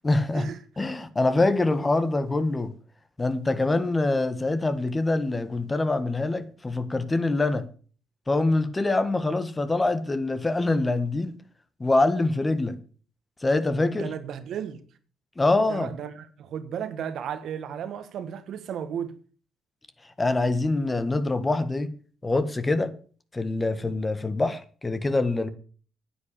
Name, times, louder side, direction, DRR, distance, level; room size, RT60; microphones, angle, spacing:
voice 1, 0.0-0.5 0.8-2.7 3.2-7.7 8.3-11.4 11.8-12.8 13.4-14.1 15.4-15.9 20.2-21.9 22.2-22.9 23.3-25.5, left 2 dB, 25° left, 1.6 m, -24 dB
voice 2, 14.0-14.8 15.7-19.1, right 8 dB, 70° right, 1.5 m, -34 dB
9.5 x 8.9 x 6.8 m
supercardioid pair, 60°, 0 cm